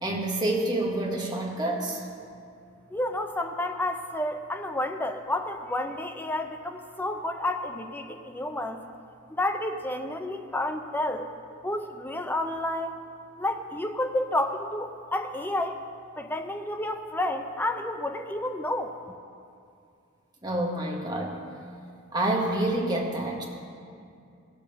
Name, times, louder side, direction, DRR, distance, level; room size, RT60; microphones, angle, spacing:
voice 1, 0.0-2.0 20.4-21.4 22.1-23.4, right 1 dB, 20° right, -1 dB, 1.3 m, -28 dB
voice 2, 2.9-8.8 9.4-11.3 11.6-13.0 13.4-15.8 16.2-19.0, left 1 dB, 10° left, 5 dB, 0.5 m, -30 dB
15.5 x 5.2 x 6.8 m, 2.4 s
head